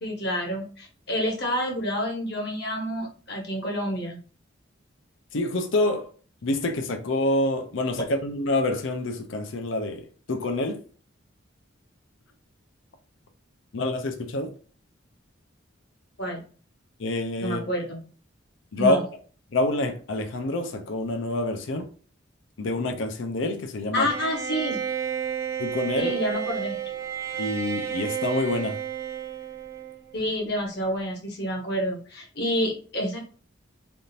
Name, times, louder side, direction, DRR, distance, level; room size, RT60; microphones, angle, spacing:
voice 1, 0.0-4.2 16.2-16.4 17.4-18.0 18.8-19.1 23.9-24.8 26.0-26.8 30.1-33.2, equal, 55° left, 1.0 m, -28 dB
voice 2, 5.3-6.1 6.4-10.0 10.3-10.8 13.7-14.5 17.0-17.6 18.7-19.0 19.5-21.8 22.6-24.1 25.6-26.1 27.4-28.8, left 2 dB, 75° left, 0.5 m, -27 dB
Bowed string instrument, 24.1-30.1, right 8 dB, 15° right, 0.4 m, -31 dB
3.5 x 2.5 x 2.7 m
head